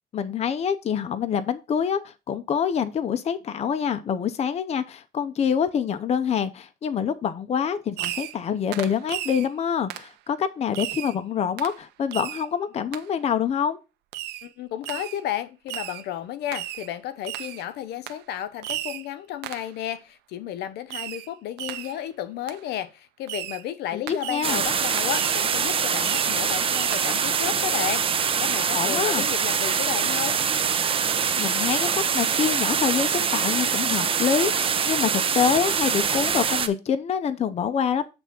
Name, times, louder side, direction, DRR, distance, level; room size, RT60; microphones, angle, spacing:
voice 1, 0.1-2.0 2.3-13.8 23.9-24.0 24.3-24.6 28.7-29.3 31.4-31.9 32.1-38.0, left 7 dB, 40° left, 0.6 m, -26 dB
Fireworks, 8.0-8.4 8.7-9.5 9.9-10.1 10.7-11.2 11.6-11.8 12.1-12.5 12.9-13.0 14.1-14.5 14.8-15.2 15.7-16.0 16.5-16.9 17.2-17.6 18.1-18.2 18.6-19.1 19.4-19.7 20.9-21.3 21.6-22.0 22.5-22.6 23.3-23.6 24.1-24.6 25.0-25.5 26.0-26.4 26.7-27.0, right 14 dB, 80° right, 0.5 m, -34 dB
voice 2, 14.4-28.0 28.4-30.4, left 11 dB, 80° left, 0.8 m, -32 dB
sound 1, 24.4-36.7, right 6 dB, 35° right, 0.7 m, -24 dB
7.9 x 3.4 x 5.7 m
cardioid pair, 110°, 17 cm